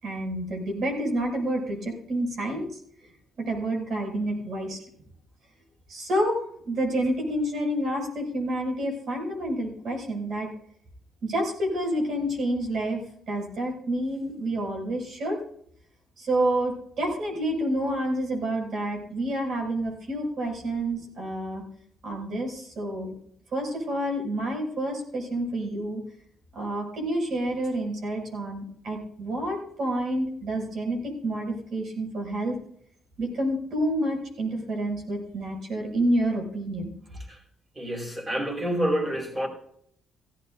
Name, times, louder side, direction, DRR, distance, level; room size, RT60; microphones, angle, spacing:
voice 1, 0.0-2.8 3.4-4.8 5.9-6.4 6.6-10.5 11.2-15.4 16.2-21.6 22.0-23.1 23.5-26.0 26.5-32.6 33.2-36.9, right 1 dB, 65° right, 0 dB, 6.4 m, -29 dB
voice 2, 37.8-39.5, equal, 25° right, 1 dB, 4.8 m, -28 dB
16.5 x 15.5 x 2.7 m, 0.66 s
cardioid pair, 90°, 0 cm